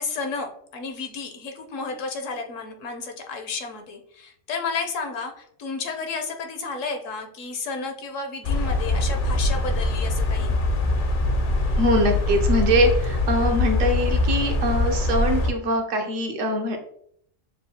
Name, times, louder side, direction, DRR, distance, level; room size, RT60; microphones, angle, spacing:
voice 1, 0.0-10.6, left 4 dB, 75° left, 5 dB, 1.1 m, -32 dB
sound 1, 8.4-15.5, left 2 dB, 55° left, 0.6 m, -23 dB
voice 2, 11.8-16.8, equal, 75° right, 3 dB, 1.1 m, -23 dB
6.4 x 2.3 x 2.8 m, 0.67 s
omnidirectional pair, 1.4 m